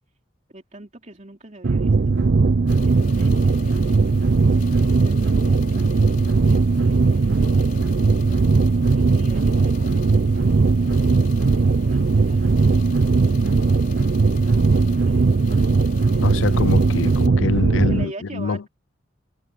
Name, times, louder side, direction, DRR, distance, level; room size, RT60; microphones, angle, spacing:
voice 1, 0.5-2.2 2.8-4.1 4.8-8.0 8.9-10.5 11.6-12.8 13.4-16.4 17.9-18.7, right 1 dB, 35° right, 3.3 m, -43 dB
sound 1, 1.6-18.0, right 4 dB, 60° right, 0.5 m, -18 dB
sound 2, 2.7-17.3, left 3 dB, 45° left, 5.2 m, -43 dB
voice 2, 16.2-18.7, left 4 dB, 80° left, 0.6 m, -25 dB
head